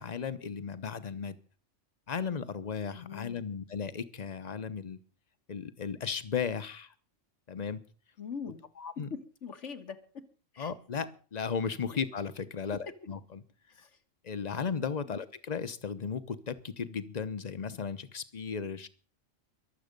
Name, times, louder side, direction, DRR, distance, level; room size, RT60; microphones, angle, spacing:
voice 1, 0.0-1.4 2.1-5.0 5.5-6.9 7.5-7.8 8.8-9.1 10.6-13.4 14.2-18.9, left 6 dB, 35° left, 13 dB, 1.0 m, -35 dB
voice 2, 2.9-3.4 8.2-8.6 9.1-10.0 10.5-10.7 13.7-14.0 15.0-15.2, left 6 dB, 75° left, 7 dB, 1.7 m, -42 dB
23.0 x 7.7 x 5.3 m, 0.40 s
omnidirectional pair, 1.3 m